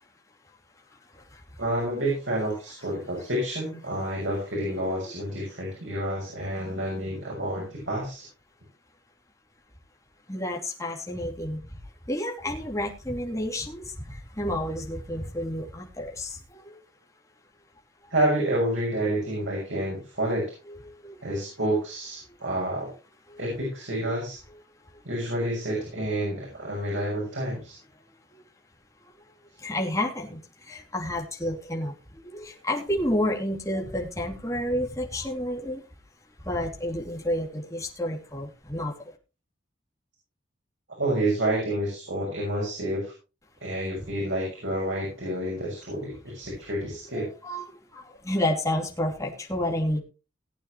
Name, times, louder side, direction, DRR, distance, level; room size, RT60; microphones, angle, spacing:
voice 1, 1.6-8.2 18.1-20.4 21.2-22.9 23.4-24.4 25.0-27.8 41.0-43.1 43.6-47.3, right 1 dB, 85° right, -2 dB, 6.4 m, -29 dB
voice 2, 10.3-11.6 12.1-13.9 14.4-16.6 20.2-20.4 20.7-20.8 21.0-21.3 29.6-30.4 30.7-31.9 32.2-35.8 36.4-38.9 44.9-45.0 47.1-50.0, left 1 dB, 15° left, -1 dB, 2.9 m, -30 dB
18.5 x 9.0 x 3.2 m, 0.32 s
head